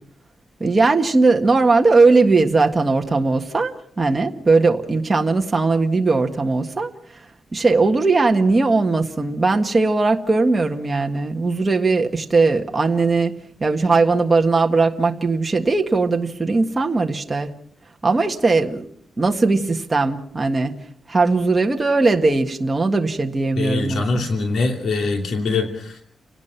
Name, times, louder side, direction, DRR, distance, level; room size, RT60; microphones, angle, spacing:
voice 1, 0.6-6.9 7.5-13.3 13.6-17.5 18.0-18.9 19.2-20.7 21.1-24.2, right 3 dB, 20° right, 3 dB, 1.6 m, -19 dB
voice 2, 23.6-26.0, left 3 dB, 70° left, 4 dB, 2.8 m, -23 dB
29.5 x 18.0 x 5.8 m, 0.62 s
wide cardioid pair, 155°, 0 cm